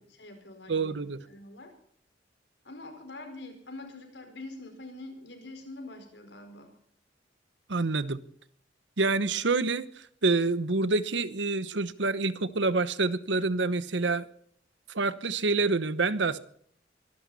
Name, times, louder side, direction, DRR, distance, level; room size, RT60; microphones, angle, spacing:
voice 1, 0.2-1.0 1.3-1.7 2.6-6.7, left 2 dB, 75° left, 5.0 m, -44 dB
voice 2, 0.7-1.2 7.7-8.2 9.0-9.8 10.2-14.3 14.9-16.4, right 3 dB, 80° right, 1.0 m, -27 dB
24.0 x 12.5 x 4.2 m
head